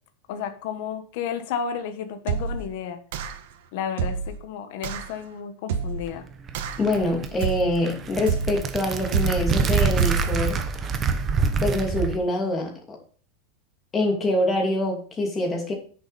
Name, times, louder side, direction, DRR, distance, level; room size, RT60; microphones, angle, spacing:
voice 1, 0.3-3.0 3.7-6.3, left 7 dB, 55° left, 1.3 m, -32 dB
sound 1, 2.3-2.7 3.1-3.5 4.0-4.4 4.8-5.1 5.7-6.1 6.5-6.9 7.4-7.8 8.3-8.7 9.1-9.5 10.0-10.4, right 6 dB, 65° right, 1.2 m, -27 dB
sound 2, 6.1-12.2, right 5 dB, 20° right, 0.9 m, -26 dB
voice 2, 6.8-10.6 11.6-13.0 13.9-15.7, left 1 dB, 15° left, 2.6 m, -25 dB
10.0 x 6.7 x 4.2 m
supercardioid pair, 160°, 0 cm